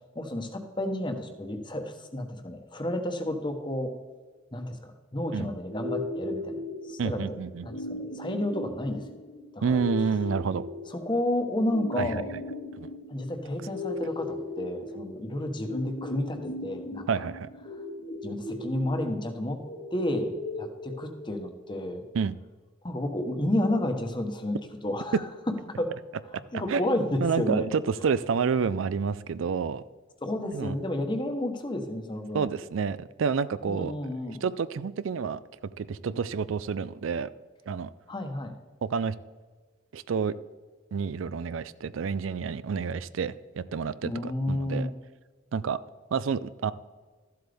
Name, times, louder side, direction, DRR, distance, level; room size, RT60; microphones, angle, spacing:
voice 1, 0.1-3.9 4.5-6.6 6.9-9.0 9.5-9.8 10.9-12.3 13.1-17.1 18.2-19.6 19.9-22.0 22.8-24.6 24.8-25.2 25.7-25.9 26.5-27.7 30.2-32.5 33.6-34.4 38.1-38.5 44.0-44.9, left 1 dB, 25° left, 6 dB, 1.1 m, -31 dB
sound 1, 5.7-21.6, left 2 dB, 60° left, 1.4 m, -38 dB
voice 2, 7.0-7.8 9.6-10.7 12.0-12.2 12.8-12.9 17.1-17.5 22.1-22.4 26.7-26.8 27.2-29.8 30.5-30.7 32.3-33.9 34.3-35.4 35.8-37.3 37.7-37.9 38.8-39.1 39.9-40.3 40.9-44.9 45.5-45.8 46.1-46.7, right 5 dB, 90° right, 16 dB, 0.4 m, -29 dB
13.5 x 7.8 x 3.5 m, 1.4 s
head